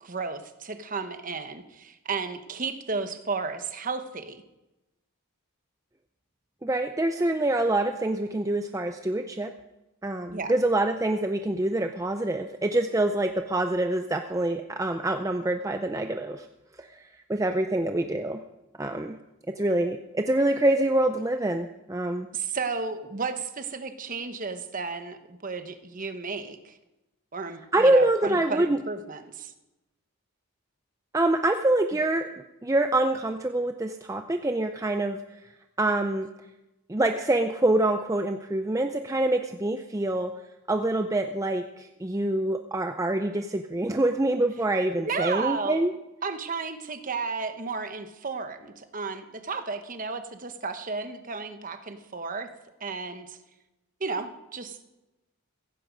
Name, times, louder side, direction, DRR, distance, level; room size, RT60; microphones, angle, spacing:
voice 1, 0.0-4.4 10.3-10.5 22.3-26.7 27.3-29.5 45.0-45.8 46.2-52.5 52.8-53.4 54.0-54.8, right 4 dB, 35° right, 8 dB, 1.1 m, -33 dB
voice 2, 6.6-9.5 10.0-16.5 16.8-18.4 18.8-19.2 19.6-22.3 27.7-28.8 31.1-35.4 35.8-36.3 36.9-40.3 40.7-45.9, right 1 dB, 15° right, 6 dB, 0.5 m, -25 dB
16.0 x 15.5 x 5.3 m, 1.0 s
head